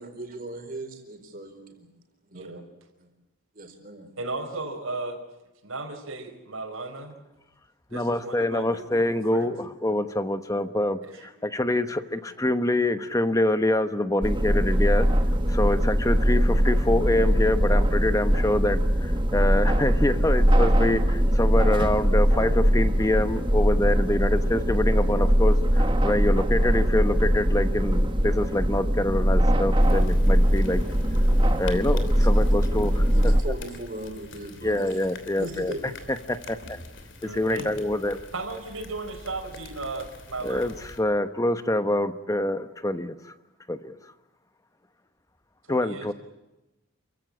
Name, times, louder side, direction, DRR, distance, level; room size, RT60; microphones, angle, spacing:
voice 1, 0.0-1.7 2.3-2.5 3.0-3.1 3.5-4.1 32.4-32.5 33.1-35.0 35.4-35.9, right 1 dB, 40° right, 5 dB, 4.4 m, -38 dB
voice 2, 4.2-5.2 5.6-7.1 7.9-9.6 11.0-11.3 37.2-37.7 38.3-40.7 45.7-46.1, right 3 dB, 75° right, 3 dB, 4.7 m, -35 dB
voice 3, 7.9-11.0 11.4-15.1 15.5-30.8 31.6-33.1 34.6-35.7 36.3-36.8 37.2-38.2 40.4-43.2 43.7-44.0 45.7-46.1, left 1 dB, 15° left, 11 dB, 1.0 m, -25 dB
sound 1, 14.2-33.4, equal, 20° right, 1.3 m, -21 dB
sound 2, 29.8-41.0, left 2 dB, 55° left, 3.1 m, -45 dB
28.5 x 16.0 x 8.8 m, 1.0 s
head